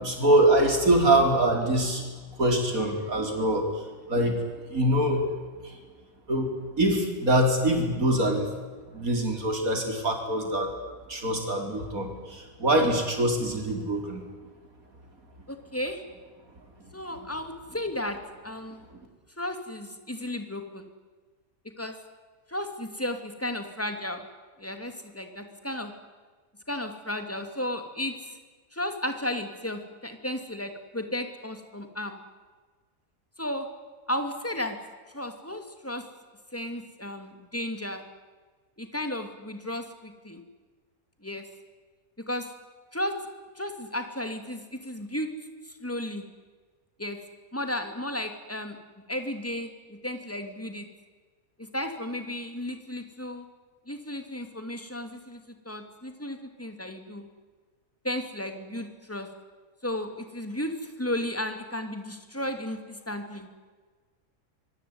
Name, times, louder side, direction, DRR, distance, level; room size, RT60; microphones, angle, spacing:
voice 1, 0.0-2.1 2.4-5.2 5.6-5.8 6.3-8.5 8.9-10.7 11.1-14.2, right 1 dB, 75° right, 4 dB, 5.0 m, -24 dB
voice 2, 15.5-16.0 16.9-18.2 18.4-18.8 19.4-20.9 21.8-22.0 22.5-24.2 24.6-25.9 26.7-28.4 28.7-32.2 33.4-33.7 34.1-34.8 35.1-36.1 36.5-38.0 38.8-40.4 41.2-41.5 42.2-42.5 42.9-43.2 43.5-45.3 45.7-46.2 47.0-47.2 47.5-48.8 49.1-50.9 51.6-53.4 53.9-57.3 58.0-59.3 59.8-63.5, left 1 dB, 10° left, 7 dB, 2.8 m, -34 dB
25.0 x 22.5 x 9.7 m, 1.4 s
omnidirectional pair, 1.5 m